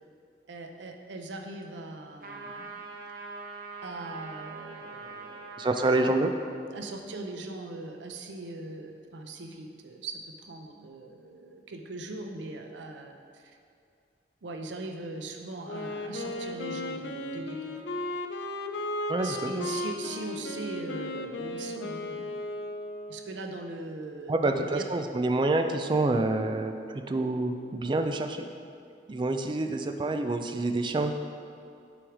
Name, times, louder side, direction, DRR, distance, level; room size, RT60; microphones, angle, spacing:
voice 1, 0.5-2.7 3.8-5.5 5.8-6.1 6.7-13.6 14.4-17.8 19.2-22.4 23.1-24.9, right 2 dB, 85° right, 4 dB, 0.6 m, -40 dB
sound 1, 2.2-6.1, right 4 dB, 50° right, 0.8 m, -42 dB
voice 2, 5.6-6.3 19.1-19.7 24.3-28.5 29.1-31.1, right 2 dB, 25° right, 6 dB, 0.3 m, -27 dB
Wind instrument woodwind instrument, 15.6-23.4, left 2 dB, 80° left, 0.5 m, -35 dB
6.1 x 4.7 x 4.9 m, 2.5 s
head